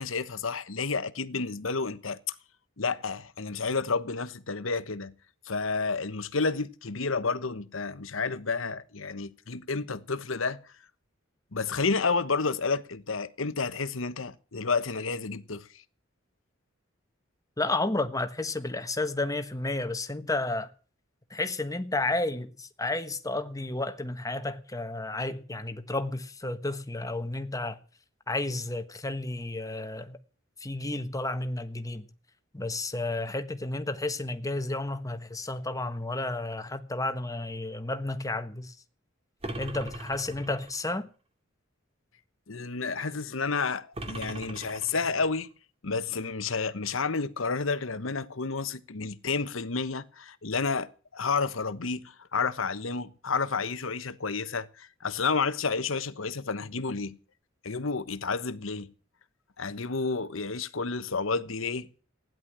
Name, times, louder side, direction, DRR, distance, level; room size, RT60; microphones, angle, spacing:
voice 1, 0.0-2.3 2.8-5.1 5.4-10.6 11.5-15.7 42.5-45.5 45.8-57.2 57.6-58.9 59.6-62.0, left 4 dB, 75° left, 1.2 m, -30 dB
voice 2, 17.6-20.7 21.3-27.8 28.3-30.2 30.6-32.1 32.5-38.7 39.6-41.1, left 2 dB, 15° left, 1.4 m, -32 dB
sound 1, 39.4-40.9 43.9-45.5, right 1 dB, 30° right, 2.4 m, -40 dB
16.0 x 10.5 x 7.5 m
head